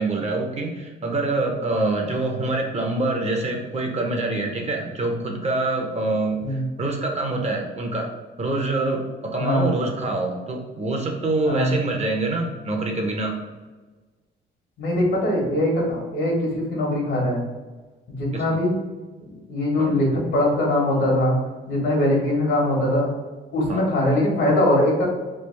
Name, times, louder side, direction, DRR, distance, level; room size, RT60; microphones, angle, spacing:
voice 1, 0.0-8.1 8.4-13.3 18.3-18.4 19.8-20.0 23.7-23.9, right 2 dB, 35° right, 1 dB, 0.7 m, -25 dB
voice 2, 9.3-9.7 11.4-11.7 14.8-17.4 18.2-18.8 19.5-21.4 21.7-23.1 23.5-25.0, left 1 dB, 75° left, -2 dB, 1.3 m, -21 dB
3.3 x 2.3 x 3.3 m, 1.3 s
cardioid pair, 90°, 20 cm